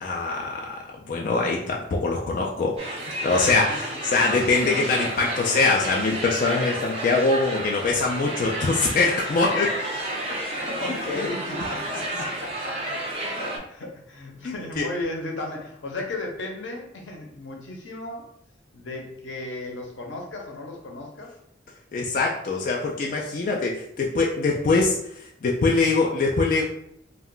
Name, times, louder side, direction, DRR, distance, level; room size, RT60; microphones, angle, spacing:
voice 1, 0.0-2.8 3.2-9.7 12.1-12.2 13.2-13.3 14.4-14.9 21.9-26.6, left 3 dB, 45° left, -1 dB, 0.3 m, -23 dB
sound 1, 2.8-13.6, right 1 dB, 35° right, 0.5 m, -31 dB
voice 2, 9.0-9.8 10.3-12.8 13.4-18.3 18.7-21.3 24.5-24.7, left 2 dB, 85° left, 0 dB, 0.7 m, -35 dB
2.4 x 2.1 x 3.6 m, 0.72 s
head